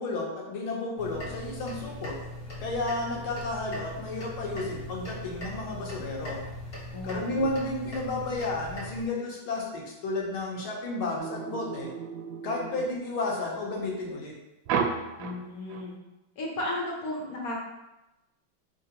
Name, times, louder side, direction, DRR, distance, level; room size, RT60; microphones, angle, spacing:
voice 1, 0.0-2.2 2.6-6.4 7.0-11.9 12.4-14.4, left 2 dB, 85° left, -1 dB, 1.7 m, -32 dB
sound 1, 1.0-9.1, left 1 dB, 35° left, 1.0 m, -40 dB
voice 2, 6.9-7.5 15.2-16.0 16.4-17.6, left 1 dB, 60° left, -2 dB, 1.1 m, -34 dB
sound 2, 11.2-13.5 14.7-15.8, right 6 dB, 75° right, 1.2 m, -33 dB
4.4 x 3.8 x 2.9 m, 0.97 s
omnidirectional pair, 2.2 m